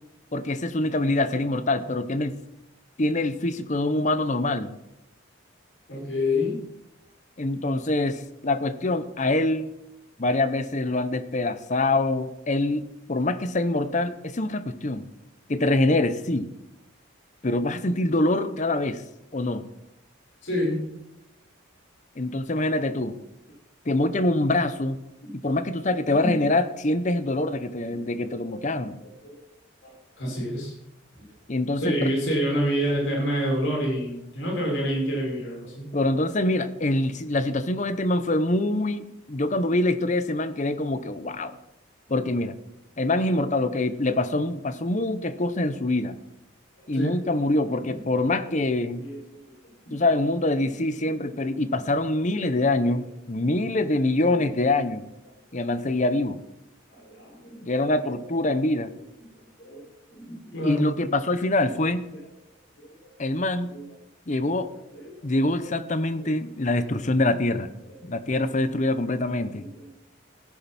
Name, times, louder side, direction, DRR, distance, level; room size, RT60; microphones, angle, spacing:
voice 1, 0.3-2.4 3.0-4.8 7.4-9.7 10.2-15.0 15.5-16.5 17.4-19.0 19.3-19.7 22.2-23.1 23.9-25.0 25.3-29.0 31.5-32.1 35.9-41.6 42.1-42.6 43.0-46.2 46.9-49.0 49.9-55.0 55.5-56.4 57.6-58.9 60.6-62.1 63.2-63.7 64.3-64.7 65.2-67.7 68.0-69.6, left 2 dB, 35° left, 12 dB, 0.8 m, -25 dB
voice 2, 5.9-6.6 20.4-20.8 25.2-25.4 26.2-26.3 27.9-28.0 28.4-28.6 29.0-29.4 29.8-30.7 31.2-31.3 31.8-35.9 46.9-47.1 47.8-48.3 49.0-49.4 49.9-50.0 51.0-51.1 51.7-51.9 52.2-52.6 52.9-53.0 53.8-54.2 55.5-55.7 56.9-57.8 58.1-58.2 59.3-60.8 61.6-61.7 62.1-62.2 62.8-62.9 63.7-63.8 64.9-66.3 66.9-67.0 67.9-68.5 68.8-69.9, equal, 65° left, -3 dB, 5.6 m, -30 dB
16.0 x 10.5 x 4.2 m, 0.86 s
head